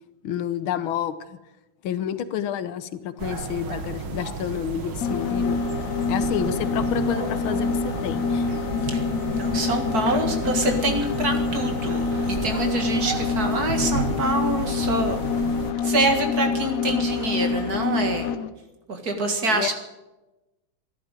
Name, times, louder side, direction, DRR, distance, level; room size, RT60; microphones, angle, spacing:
voice 1, 0.2-1.4 1.8-5.6 6.1-8.5 8.8-8.9 19.5-19.7, left 9 dB, 80° left, 13 dB, 1.7 m, -29 dB
sound 1, 3.2-15.7, right 4 dB, 90° right, 2.4 m, -32 dB
sound 2, 5.0-18.5, left 5 dB, 65° left, 0.9 m, -26 dB
voice 2, 9.4-15.2 15.8-18.3 18.9-19.7, right 2 dB, 50° right, 5 dB, 2.3 m, -26 dB
14.0 x 11.5 x 9.0 m, 1.0 s
omnidirectional pair, 2.2 m